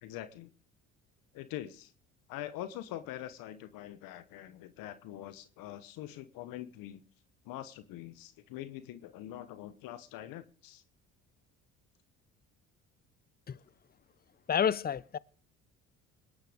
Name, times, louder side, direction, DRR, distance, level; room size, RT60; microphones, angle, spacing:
voice 1, 0.0-0.5 1.3-1.9 2.3-7.0 7.4-10.8, left 13 dB, 75° left, 1.2 m, -44 dB
voice 2, 14.5-15.2, left 8 dB, 25° left, 0.7 m, -29 dB
20.0 x 10.0 x 5.1 m
supercardioid pair, 70°, 34 cm